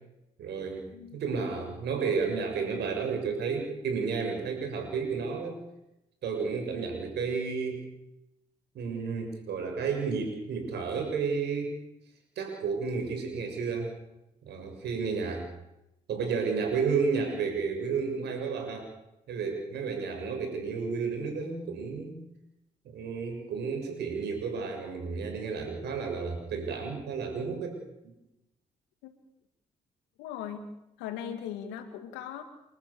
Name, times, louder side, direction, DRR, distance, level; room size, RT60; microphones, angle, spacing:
voice 1, 0.4-5.6 6.2-7.8 8.8-11.7 12.4-13.9 14.5-15.5 16.1-18.9 19.3-22.2 22.9-27.8 28.0-28.1, right 5 dB, 75° right, 4 dB, 6.8 m, -32 dB
voice 2, 30.2-30.7 31.0-32.4, left 9 dB, 85° left, 8 dB, 2.4 m, -39 dB
30.0 x 13.5 x 7.2 m, 0.89 s
hypercardioid pair, 45°, 18 cm